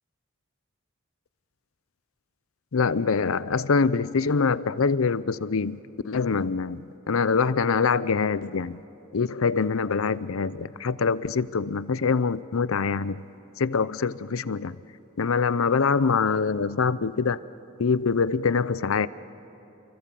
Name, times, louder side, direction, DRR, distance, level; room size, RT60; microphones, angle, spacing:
voice 1, 2.7-8.8 9.1-13.2 13.6-14.8 15.2-17.4 17.8-19.1, left 5 dB, 85° left, 17 dB, 0.6 m, -24 dB
29.0 x 23.5 x 7.6 m, 2.9 s
head